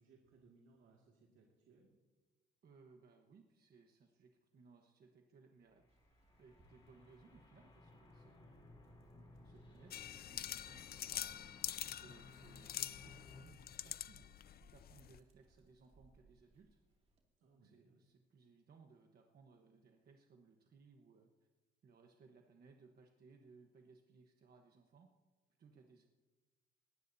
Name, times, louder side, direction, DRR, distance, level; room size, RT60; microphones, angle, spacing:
voice 1, 0.0-1.9 8.4-9.0 17.4-18.0, right 4 dB, 80° right, 0 dB, 2.2 m, -68 dB
voice 2, 2.6-5.9 6.4-8.6 9.1-11.4 11.9-14.3 14.7-16.8 17.6-21.3 21.8-25.1 25.6-26.1, right 4 dB, 50° right, 3 dB, 1.2 m, -64 dB
sound 1, 5.7-13.4, left 2 dB, 25° left, 4.2 m, -60 dB
Dog, 5.9-17.2, right 2 dB, 30° right, 2.4 m, -71 dB
sound 2, 9.9-15.2, left 11 dB, 50° left, 0.4 m, -46 dB
20.5 x 15.5 x 2.7 m, 1.3 s
cardioid pair, 125°, 20 cm